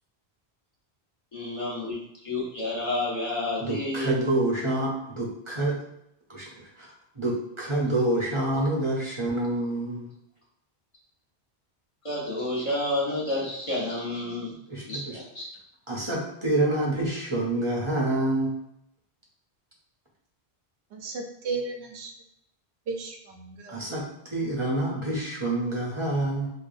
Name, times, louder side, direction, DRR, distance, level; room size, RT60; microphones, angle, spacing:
voice 1, 1.3-4.1 12.0-14.6 14.9-15.5, left 2 dB, 30° left, -5 dB, 1.0 m, -30 dB
voice 2, 3.6-5.8 6.3-6.9 7.2-10.1 14.7-15.2 15.9-18.5 23.7-26.5, right 1 dB, 35° right, -3 dB, 0.6 m, -27 dB
voice 3, 20.9-22.1 22.9-23.7, right 4 dB, 90° right, 3 dB, 0.9 m, -34 dB
4.7 x 2.2 x 2.5 m, 0.76 s
omnidirectional pair, 1.1 m